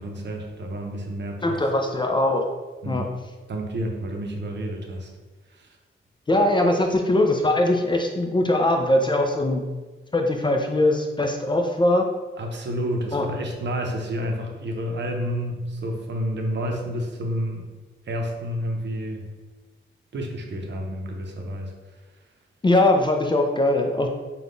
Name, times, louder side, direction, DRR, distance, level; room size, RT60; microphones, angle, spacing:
voice 1, 0.0-1.6 2.8-3.1 3.5-5.1 5.5-5.7 12.4-17.7 18.1-19.3 20.1-21.7, equal, 60° right, 2 dB, 0.6 m, -30 dB
voice 2, 1.4-2.4 2.9-3.0 6.3-9.6 10.1-12.1 13.1-13.2 22.6-24.1, left 1 dB, 25° left, 2 dB, 0.3 m, -21 dB
3.5 x 2.3 x 3.7 m, 1.3 s
wide cardioid pair, 105°, 21 cm